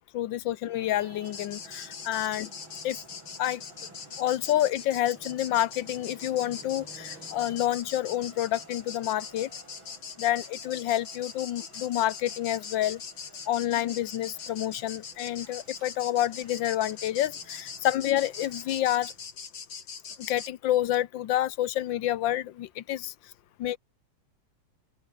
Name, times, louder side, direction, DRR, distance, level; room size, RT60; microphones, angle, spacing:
voice 1, 0.1-2.5 2.8-3.0 3.4-3.6 4.2-9.5 10.2-13.0 13.5-19.1 20.2-23.1 23.6-23.8, left 13 dB, 65° left, 1.5 m, -28 dB
Traffic noise roadway noise, 0.6-19.3, right 2 dB, 65° right, 7.8 m, -53 dB
sound 1, 1.3-20.5, left 6 dB, 90° left, 3.6 m, -42 dB
open air
omnidirectional pair, 2.3 m